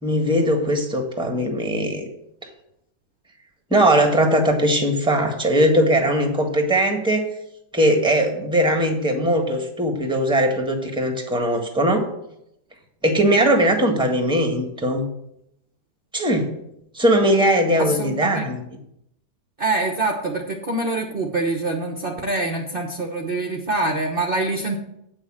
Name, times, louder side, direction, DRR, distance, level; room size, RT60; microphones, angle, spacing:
voice 1, 0.0-2.1 3.7-7.2 7.7-12.1 13.0-15.1 16.1-16.5 16.9-18.6, right 1 dB, 5° right, 3 dB, 1.4 m, -20 dB
voice 2, 17.8-18.5 19.6-24.8, right 2 dB, 40° right, 2 dB, 1.1 m, -25 dB
8.8 x 6.4 x 7.5 m, 0.79 s
omnidirectional pair, 1.7 m